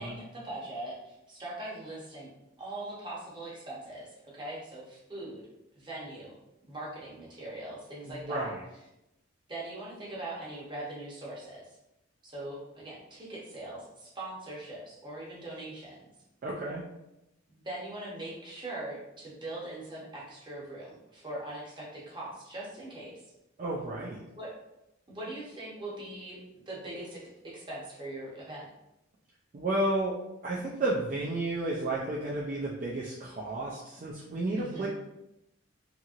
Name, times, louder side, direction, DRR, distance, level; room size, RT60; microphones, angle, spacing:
voice 1, 0.0-2.3 2.6-5.5 5.7-6.3 6.7-8.5 9.5-11.7 12.2-16.0 17.5-23.2 24.4-24.5 25.1-26.4 26.7-28.7 34.6-34.9, right 1 dB, 25° right, -5 dB, 0.8 m, -41 dB
voice 2, 8.1-8.6 16.4-16.8 23.6-24.2 29.5-30.2 30.4-34.9, right 2 dB, 40° right, -5 dB, 0.4 m, -32 dB
2.9 x 2.8 x 2.5 m, 0.89 s
head